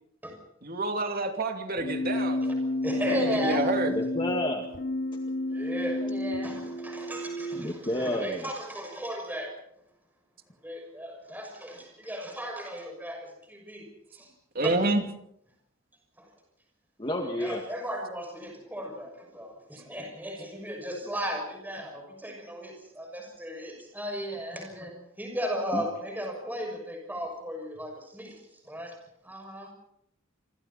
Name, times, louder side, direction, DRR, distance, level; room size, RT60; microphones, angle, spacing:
voice 1, 0.6-2.4 3.0-3.9 14.5-15.0, right 2 dB, 50° right, 4 dB, 2.8 m, -28 dB
Keyboard (musical), 1.8-7.7, left 1 dB, 45° left, 1.1 m, -31 dB
voice 2, 2.4-3.8 5.5-9.5 10.6-14.3 14.6-14.7 16.2-16.3 17.4-28.9 29.2-29.7, equal, 10° right, 3 dB, 6.4 m, -36 dB
voice 3, 3.9-4.7 7.5-8.5 17.0-17.6 25.7-25.9, left 1 dB, 25° left, 2 dB, 1.9 m, -30 dB
26.5 x 26.5 x 4.2 m, 0.73 s
head